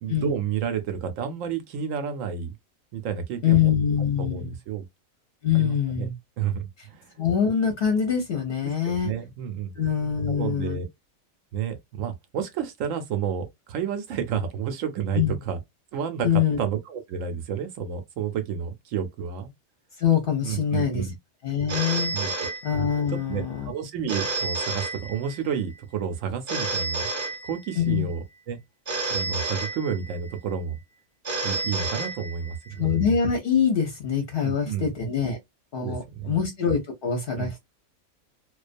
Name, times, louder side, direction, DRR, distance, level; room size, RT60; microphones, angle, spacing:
voice 1, 0.0-2.5 2.9-3.7 4.2-4.8 5.5-6.1 6.4-7.1 8.6-9.7 10.3-10.8 11.5-15.6 15.9-19.5 20.4-21.2 22.1-22.5 23.3-28.6 29.1-30.8 31.4-32.9 34.4-34.9 35.8-36.3 37.3-37.6, right 7 dB, 70° right, 0.9 m, -31 dB
voice 2, 3.4-4.5 5.4-6.1 7.2-9.1 9.8-10.8 15.1-15.3 16.2-16.6 20.0-21.1 21.4-22.1 22.6-23.7 27.8-28.1 32.8-35.4 35.7-37.6, left 7 dB, 50° left, 0.7 m, -24 dB
Telephone, 21.7-23.2 24.1-25.6 26.5-28.0 28.9-30.4 31.2-32.7, right 3 dB, 30° right, 0.5 m, -30 dB
2.4 x 2.2 x 2.4 m
omnidirectional pair, 1.5 m